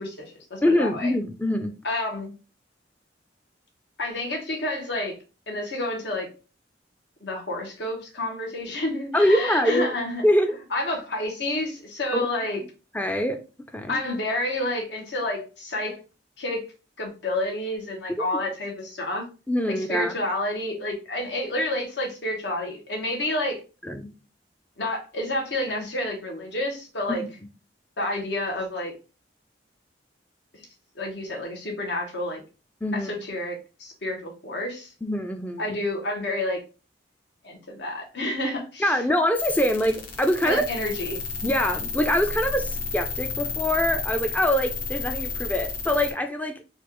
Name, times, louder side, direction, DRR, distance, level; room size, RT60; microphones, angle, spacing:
voice 1, 0.0-1.1 1.8-2.3 4.0-5.2 5.5-6.3 7.2-10.2 10.7-12.6 13.9-16.0 16.4-16.6 17.0-19.2 19.7-23.6 24.8-27.2 28.0-28.9 31.0-32.4 32.9-34.9 35.6-36.6 37.4-39.0 40.4-41.2, left 1 dB, 70° left, 1.2 m, -29 dB
voice 2, 0.6-1.8 9.1-9.9 10.2-10.6 12.1-12.3 12.9-13.4 13.7-14.0 18.2-18.3 19.5-20.2 23.8-24.1 32.8-33.1 35.0-35.7 38.8-40.7 41.4-46.6, left 1 dB, 10° left, 0.4 m, -24 dB
sound 1, 39.3-46.1, left 4 dB, 50° left, 0.9 m, -32 dB
4.2 x 2.4 x 2.9 m
head